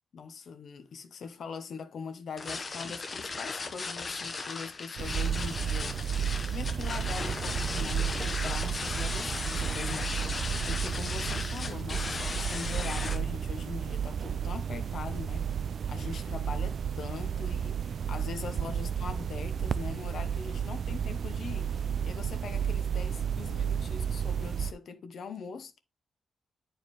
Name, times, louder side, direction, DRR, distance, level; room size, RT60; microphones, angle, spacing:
voice 1, 0.1-6.0 6.5-15.6 15.9-25.8, left 5 dB, 60° left, 0.9 m, -42 dB
sound 1, 2.4-13.2, left 4 dB, 30° left, 0.9 m, -36 dB
sound 2, 5.0-24.7, right 8 dB, 55° right, 0.3 m, -32 dB
9.2 x 4.7 x 3.1 m
wide cardioid pair, 155°, 0 cm